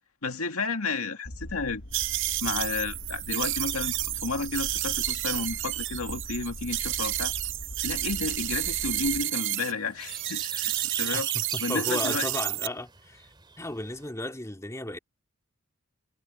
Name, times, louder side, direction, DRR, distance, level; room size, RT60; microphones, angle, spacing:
voice 1, 0.2-1.8 2.4-7.3 7.8-10.7 11.0-11.3 11.6-12.3, left 3 dB, 80° left, 2.1 m, -32 dB
sound 1, 1.3-9.3, left 1 dB, 60° left, 1.7 m, -42 dB
sound 2, 1.9-9.7 10.0-12.7, right 15 dB, 55° right, 0.7 m, -30 dB
sound 3, 8.2-14.1, right 5 dB, 20° right, 3.6 m, -44 dB
voice 2, 11.5-13.2 13.6-15.0, left 1 dB, 15° left, 2.4 m, -34 dB
head